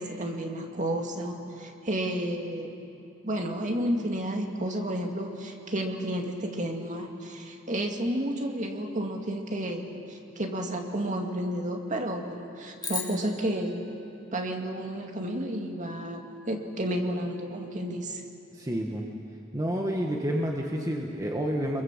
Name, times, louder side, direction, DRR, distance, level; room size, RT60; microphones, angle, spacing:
voice 1, 0.0-2.8 3.2-14.0 14.3-18.2, right 1 dB, 40° right, 2 dB, 2.3 m, -31 dB
sound 1, 12.8-15.2, left 4 dB, 20° left, 3.2 m, -39 dB
voice 2, 18.6-19.0 19.5-21.8, equal, 15° right, 0 dB, 1.6 m, -29 dB
28.0 x 22.5 x 7.5 m, 2.7 s
head